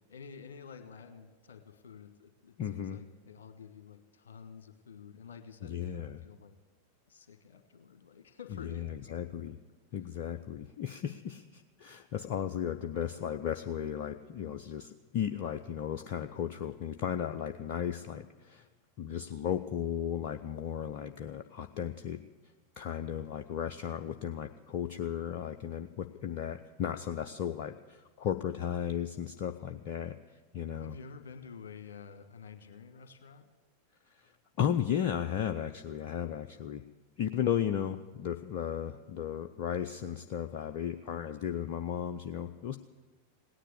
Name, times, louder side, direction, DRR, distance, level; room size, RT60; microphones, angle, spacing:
voice 1, 0.1-6.6 7.1-9.2 23.1-23.4 30.5-33.5, left 6 dB, 65° left, 8 dB, 1.4 m, -50 dB
voice 2, 2.6-3.0 5.6-6.3 8.6-9.6 9.9-18.7 19.0-22.2 22.8-30.2 30.5-30.9 34.1-34.3 34.6-36.8 37.2-42.8, left 9 dB, 45° left, 7 dB, 0.6 m, -35 dB
17.5 x 10.0 x 8.2 m, 1.3 s
figure-of-eight pair, 90°, 0 cm